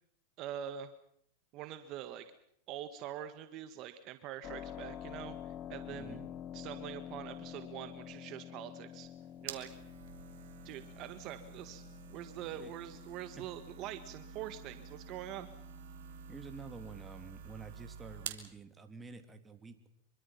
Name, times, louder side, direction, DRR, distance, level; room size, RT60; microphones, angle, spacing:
voice 1, 0.4-0.9 1.5-2.2 2.7-6.2 6.5-9.1 9.4-9.7 10.6-11.8 12.1-15.5, right 11 dB, 45° right, 9 dB, 1.6 m, -44 dB
Keyboard (musical), 4.4-17.0, left 10 dB, 35° left, 1.1 m, -49 dB
voice 2, 5.9-6.3 9.5-9.6 12.5-12.7 13.4-13.5 16.3-19.9, right 4 dB, 15° right, 7 dB, 2.9 m, -49 dB
sound 1, 8.9-18.5, right 9 dB, 75° right, 3.2 m, -49 dB
26.0 x 24.0 x 5.8 m, 0.70 s
hypercardioid pair, 120°, 0 cm